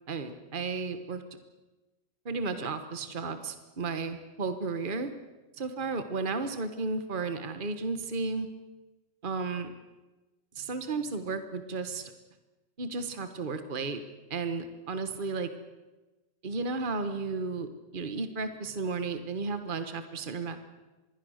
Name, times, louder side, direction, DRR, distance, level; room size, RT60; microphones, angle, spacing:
voice 1, 0.1-1.2 2.2-5.1 5.6-8.5 9.2-9.7 10.5-12.1 12.8-14.0 14.3-15.5 16.4-20.6, right 4 dB, 45° right, 9 dB, 1.5 m, -33 dB
26.0 x 21.5 x 6.5 m, 1.1 s
omnidirectional pair, 1.2 m